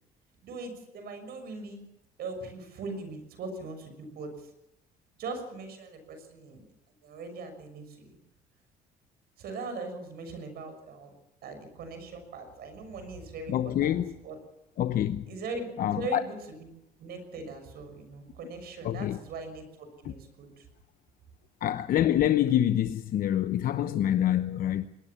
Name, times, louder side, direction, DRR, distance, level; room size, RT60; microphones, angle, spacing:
voice 1, 0.4-1.8 2.2-4.3 5.2-6.6 7.0-8.2 9.4-11.1 11.4-13.5 13.8-14.0 14.2-14.4 15.3-16.7 17.0-20.6, right 3 dB, 65° right, 6.3 m, -40 dB
voice 2, 13.5-14.1 14.8-15.3 15.8-16.2 18.8-19.2 20.0-20.1 21.6-24.9, left 11 dB, 60° left, 0.9 m, -26 dB
22.0 x 19.0 x 7.1 m
cardioid pair, 110°, 17 cm